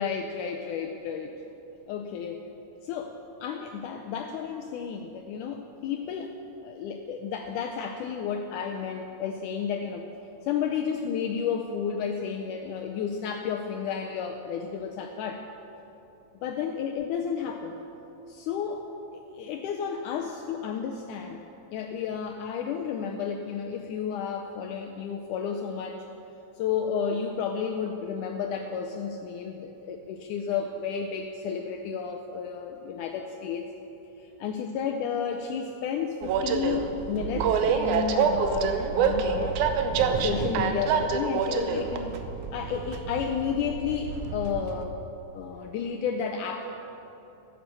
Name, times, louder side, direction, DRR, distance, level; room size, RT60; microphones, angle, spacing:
voice 1, 0.0-1.4 1.9-2.4 2.8-3.2 3.4-6.3 6.6-10.1 10.4-15.5 16.4-17.8 18.3-18.9 19.3-21.5 21.7-26.1 26.6-33.6 34.2-39.6 40.0-42.2 42.5-45.0 45.3-46.6, left 7 dB, 80° left, 3 dB, 1.9 m, -32 dB
Train, 36.2-44.8, right 6 dB, 75° right, 1.9 m, -27 dB
13.5 x 9.0 x 6.8 m, 3.0 s
omnidirectional pair, 4.0 m